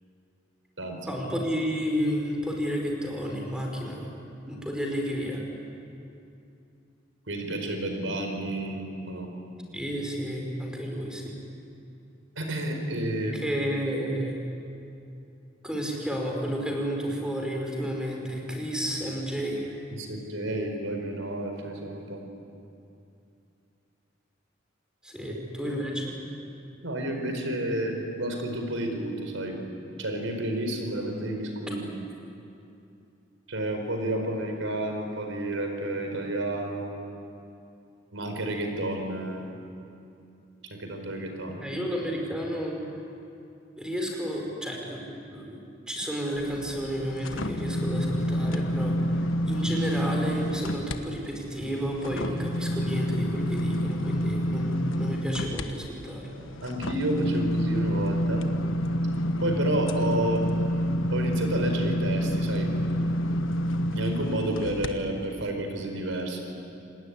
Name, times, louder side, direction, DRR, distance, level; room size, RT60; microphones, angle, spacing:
voice 1, 1.1-4.1 4.5-5.4 9.7-11.3 13.3-14.4 15.6-19.7 25.0-26.1 41.6-42.8 43.8-45.6 45.9-49.1 49.5-56.3, equal, 5° right, 0 dB, 5.0 m, -31 dB
voice 2, 7.3-9.3 12.4-13.5 19.9-22.2 25.6-25.8 26.8-29.6 30.0-31.8 33.5-36.9 38.1-39.4 40.6-41.8 56.6-58.5 59.4-60.4 61.1-62.7 63.9-66.4, right 1 dB, 85° right, 4 dB, 4.8 m, -30 dB
sound 1, 46.4-51.0 51.4-64.9 65.4-65.5, equal, 90° left, 1.3 m, -28 dB
27.5 x 19.5 x 9.8 m, 2.6 s
head